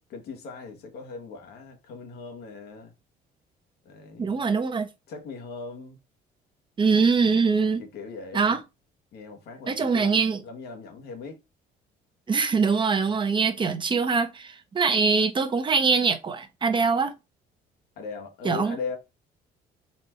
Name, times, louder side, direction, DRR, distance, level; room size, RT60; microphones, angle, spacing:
voice 1, 0.0-2.9 3.8-4.5 5.1-6.0 6.9-7.3 7.8-8.6 9.1-11.4 18.0-19.0, left 5 dB, 75° left, 1.3 m, -39 dB
voice 2, 4.2-4.9 6.8-7.8 8.3-8.6 9.7-10.4 12.3-17.1 18.4-18.8, right 5 dB, 30° right, 0.7 m, -23 dB
4.3 x 2.5 x 4.3 m
cardioid pair, 110°, 17 cm